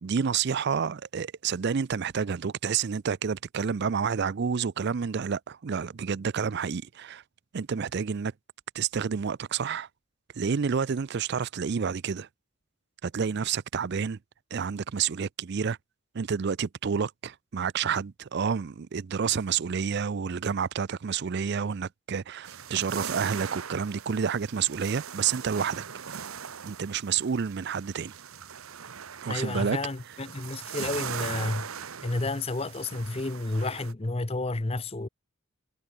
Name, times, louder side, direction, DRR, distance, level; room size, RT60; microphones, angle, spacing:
voice 1, 0.0-7.2 7.5-8.3 8.7-9.9 10.4-12.3 13.0-14.2 14.5-15.8 16.1-25.8 26.6-28.1 29.2-29.8, right 6 dB, 50° right, 0.4 m, -29 dB
sound 1, 22.4-33.9, right 7 dB, 80° right, 1.0 m, -40 dB
voice 2, 29.3-31.7 32.0-35.1, left 2 dB, 30° left, 0.8 m, -31 dB
head